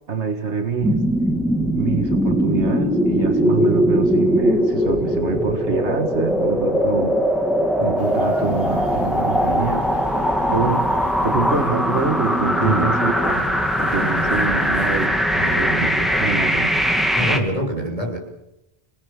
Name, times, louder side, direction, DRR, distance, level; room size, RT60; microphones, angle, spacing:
voice 1, 0.1-1.0 1.7-7.3 7.8-9.9 10.2-10.9 11.2-13.5 13.8-15.2 15.6-16.8, right 4 dB, 80° right, 6 dB, 2.0 m, -25 dB
sound 1, 0.8-17.4, equal, ahead, 2.7 m, -20 dB
sound 2, 8.0-15.1, left 1 dB, 55° left, 3.6 m, -39 dB
voice 2, 12.6-12.9 14.1-14.4 15.3-15.9 17.1-18.2, right 1 dB, 30° right, 1 dB, 6.7 m, -26 dB
29.0 x 19.5 x 7.3 m, 0.86 s
omnidirectional pair, 1.2 m